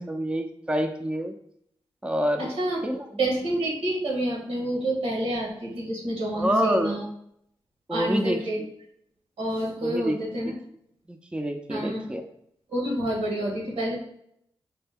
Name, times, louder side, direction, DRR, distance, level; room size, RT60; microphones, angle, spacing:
voice 1, 0.0-1.3 2.0-2.5 2.8-3.2 6.3-7.0 7.9-8.7 9.8-10.2 11.1-12.2, equal, 10° right, 5 dB, 0.5 m, -27 dB
voice 2, 2.4-2.8 3.2-7.0 7.9-8.6 9.4-10.5 11.7-12.0 12.7-13.9, right 1 dB, 85° right, -3 dB, 1.5 m, -28 dB
4.3 x 2.2 x 3.5 m, 0.71 s
cardioid pair, 45°, 10 cm